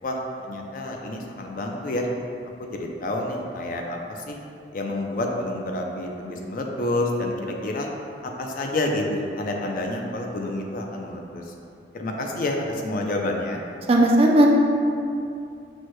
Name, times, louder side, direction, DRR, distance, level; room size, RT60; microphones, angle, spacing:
voice 1, 0.0-2.1 2.6-4.4 4.7-7.9 8.2-11.4 11.9-13.6, left 1 dB, 50° left, 1 dB, 0.4 m, -29 dB
voice 2, 13.9-14.5, right 1 dB, 30° right, 0 dB, 0.3 m, -16 dB
6.1 x 2.1 x 3.0 m, 2.6 s
head